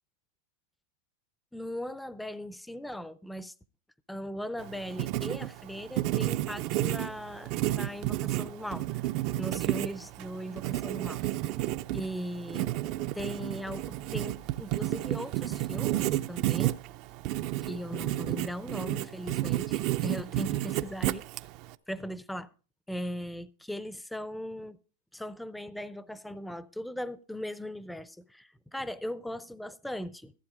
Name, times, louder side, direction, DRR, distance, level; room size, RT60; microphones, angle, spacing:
voice 1, 1.5-3.5 4.1-8.9 9.4-11.3 11.9-12.7 13.1-16.8 17.6-21.2 21.9-22.5 22.9-24.8 25.1-30.3, equal, 5° left, 0.5 m, -38 dB
Writing, 4.6-21.7, right 15 dB, 40° right, 0.5 m, -32 dB
15.0 x 7.8 x 4.8 m
supercardioid pair, 150°, 0 cm